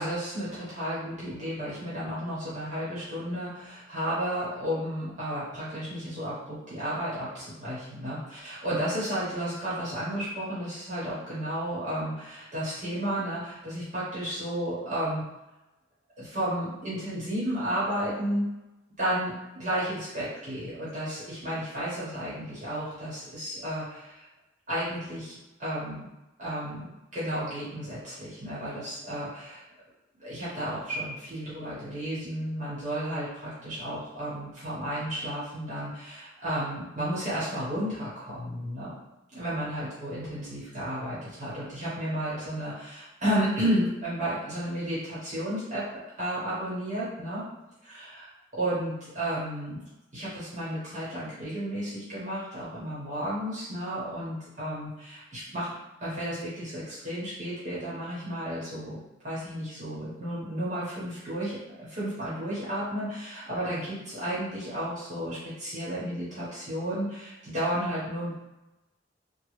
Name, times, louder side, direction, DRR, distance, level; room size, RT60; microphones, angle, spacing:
voice 1, 0.0-15.2 16.2-18.4 19.0-24.2 24.7-26.1 26.4-29.6 30.2-38.9 39.3-45.8 46.2-47.4 47.8-48.3 48.5-49.8 50.1-55.7 56.0-59.0 59.2-61.6 61.9-68.3, equal, 40° right, -10 dB, 1.3 m, -32 dB
3.0 x 2.4 x 3.2 m, 0.97 s
head